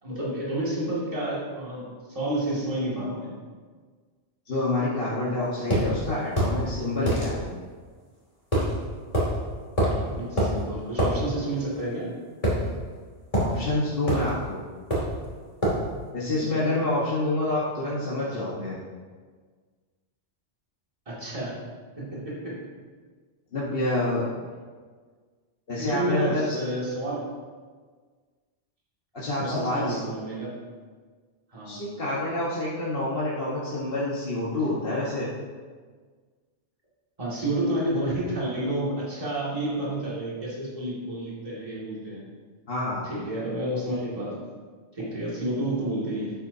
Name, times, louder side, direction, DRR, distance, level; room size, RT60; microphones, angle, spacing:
voice 1, 0.0-1.8 2.1-3.3 9.9-12.1 16.2-16.7 18.3-18.4 21.1-21.6 22.0-22.6 25.8-27.2 29.3-30.5 31.5-31.8 37.2-42.2 43.0-44.4 44.9-46.3, right 1 dB, 30° right, -7 dB, 2.5 m, -30 dB
voice 2, 4.5-7.4 13.4-14.6 16.1-18.8 23.5-24.2 25.7-26.5 29.1-30.0 31.6-35.3 42.7-43.1, left 2 dB, 55° left, -8 dB, 1.6 m, -27 dB
sound 1, 5.7-5.9 6.4-6.6 7.1-7.3 8.5-8.7 9.1-9.3 9.8-10.0 10.4-10.5 11.0-11.1 12.4-13.0 13.3-13.5 14.1-14.3 14.9-15.2 15.6-15.8, right 1 dB, 30° left, 2.8 m, -24 dB
12.0 x 8.9 x 2.8 m, 1.5 s
omnidirectional pair, 1.2 m